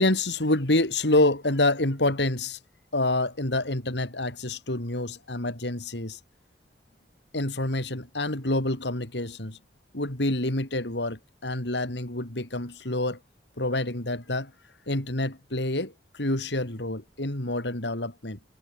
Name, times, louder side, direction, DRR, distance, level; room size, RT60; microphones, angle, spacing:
voice 1, 0.0-2.6 2.9-6.2 7.3-9.6 9.9-13.2 13.6-14.5 14.9-18.4, left 2 dB, 75° left, 3.7 m, -27 dB
head